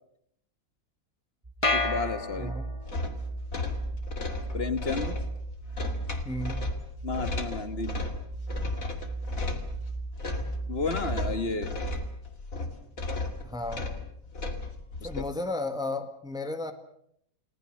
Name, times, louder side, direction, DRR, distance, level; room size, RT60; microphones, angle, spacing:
sound 1, 1.4-12.2, right 3 dB, 20° right, 2.2 m, -37 dB
sound 2, 1.6-3.0, left 3 dB, 20° left, 2.1 m, -29 dB
voice 1, 1.7-2.6 4.5-5.2 7.0-8.1 10.7-11.8 15.0-15.2, left 4 dB, 45° left, 10 dB, 1.8 m, -32 dB
voice 2, 2.4-2.7 6.2-6.6 13.4-13.9 15.0-16.7, left 2 dB, 5° right, 7 dB, 1.7 m, -33 dB
sound 3, 2.8-15.3, left 3 dB, 70° left, 2.8 m, -35 dB
30.0 x 19.5 x 6.6 m, 0.71 s
omnidirectional pair, 1.5 m